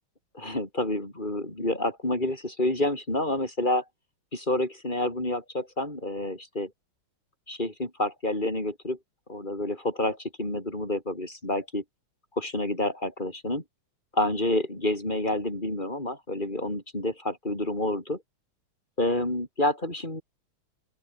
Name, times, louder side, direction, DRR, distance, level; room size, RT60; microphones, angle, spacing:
voice 1, 0.3-3.8 4.3-6.7 7.5-9.0 9.3-11.8 12.4-13.6 14.1-18.2 19.0-20.2, left 1 dB, 20° left, 6.4 m, -28 dB
open air
omnidirectional pair, 2.3 m